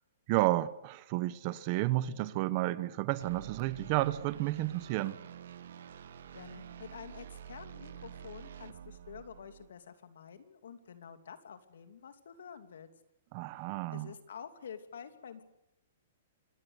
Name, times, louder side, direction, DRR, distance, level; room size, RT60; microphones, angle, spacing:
voice 1, 0.3-5.2 13.3-14.1, right 17 dB, 30° right, 0.9 m, -31 dB
sound 1, 3.2-9.7, right 8 dB, 75° right, 2.0 m, -48 dB
voice 2, 6.3-12.9 13.9-15.4, left 7 dB, 85° left, 2.8 m, -49 dB
26.5 x 17.5 x 8.2 m
hypercardioid pair, 170°, 0 cm